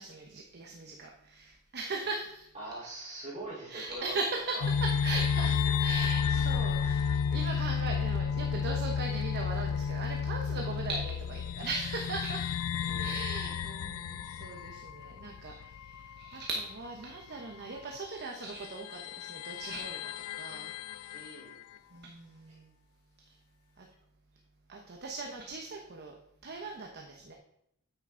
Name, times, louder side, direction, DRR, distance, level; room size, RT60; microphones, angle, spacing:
voice 1, 0.0-2.5 3.7-21.3 21.9-22.7 23.3-23.4 23.8-23.9 24.7-26.1 26.4-27.3, right 3 dB, 50° right, 1 dB, 1.1 m, -39 dB
voice 2, 2.5-4.2 4.5-4.6 12.8-13.2 15.4-15.6 21.1-21.6 22.5-22.6, right 2 dB, 35° right, -4 dB, 4.3 m, -43 dB
sound 1, 4.6-16.6 16.8-16.9 18.0-18.1 18.6-21.6, left 6 dB, 70° left, 0.3 m, -32 dB
9.2 x 9.1 x 3.9 m, 0.77 s
head